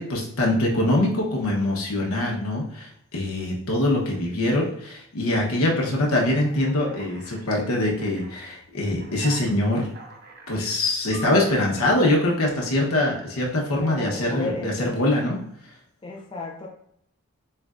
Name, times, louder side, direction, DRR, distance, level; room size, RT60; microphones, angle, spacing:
voice 1, 0.0-9.9 10.5-15.4, left 1 dB, 80° left, -2 dB, 1.0 m, -23 dB
Alarm, 6.4-7.5 8.0-8.5 9.0-10.6 11.1-11.7, right 3 dB, 45° right, 0.7 m, -42 dB
voice 2, 13.7-15.2 16.0-16.7, left 2 dB, 20° left, 0 dB, 0.4 m, -34 dB
6.9 x 2.3 x 2.5 m, 0.72 s
head